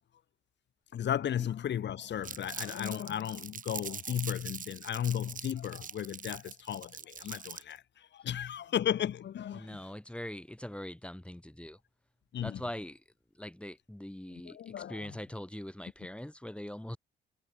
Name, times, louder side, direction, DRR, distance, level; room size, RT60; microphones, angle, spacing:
voice 1, 0.9-9.8 12.3-12.6 14.3-15.2, left 10 dB, 65° left, 3.0 m, -35 dB
Crumpling crinkling, 2.2-7.8, right 6 dB, 40° right, 2.0 m, -43 dB
voice 2, 9.5-11.8 12.4-13.0 13.4-17.0, left 1 dB, 5° left, 6.3 m, -42 dB
cardioid pair, 90°, 20 cm